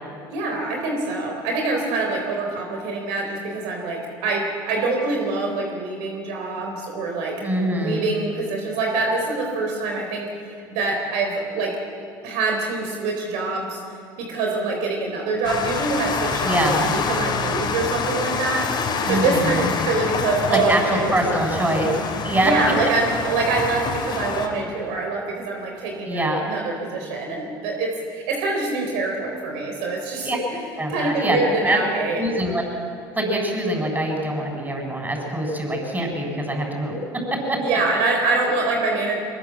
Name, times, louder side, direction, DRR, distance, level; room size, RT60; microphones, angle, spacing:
voice 1, 0.3-7.4 7.8-11.7 12.2-13.8 14.2-18.7 19.1-21.4 22.4-32.2 37.6-39.2, right 3 dB, 70° right, 1 dB, 3.9 m, -25 dB
voice 2, 7.4-8.1 16.4-16.9 19.1-19.7 20.5-22.5 26.1-26.4 30.2-30.4 30.8-31.8 32.2-32.6 33.1-37.0 37.3-37.6, right 1 dB, 15° right, 1 dB, 7.7 m, -24 dB
sound 1, 15.4-24.5, left 5 dB, 45° left, 4.0 m, -27 dB
23.0 x 21.0 x 7.7 m, 2.4 s
hypercardioid pair, 70°, 11 cm